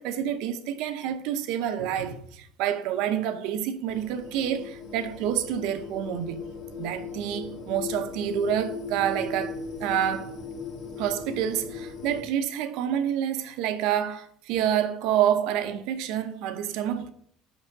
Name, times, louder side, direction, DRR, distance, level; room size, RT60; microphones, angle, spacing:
voice 1, 0.0-6.4 6.8-10.4 11.0-17.1, right 9 dB, 70° right, 0.9 m, -28 dB
sound 1, 3.9-12.2, left 4 dB, 50° left, 1.9 m, -38 dB
6.0 x 5.7 x 6.6 m
cardioid pair, 165°, 0 cm